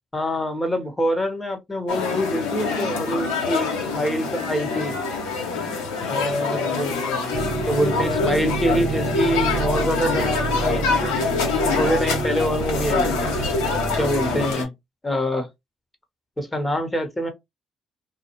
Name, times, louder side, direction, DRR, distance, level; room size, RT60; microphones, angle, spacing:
voice 1, 0.1-5.0 6.1-7.3 7.7-10.8 11.4-13.3 14.0-14.7 15.0-15.5 16.4-17.3, equal, 15° left, 1.1 m, -25 dB
sound 1, 1.9-14.6, left 4 dB, 90° left, 1.0 m, -25 dB
sound 2, 7.3-14.5, right 5 dB, 65° right, 0.6 m, -29 dB
2.4 x 2.2 x 2.9 m
supercardioid pair, 60°, 0 cm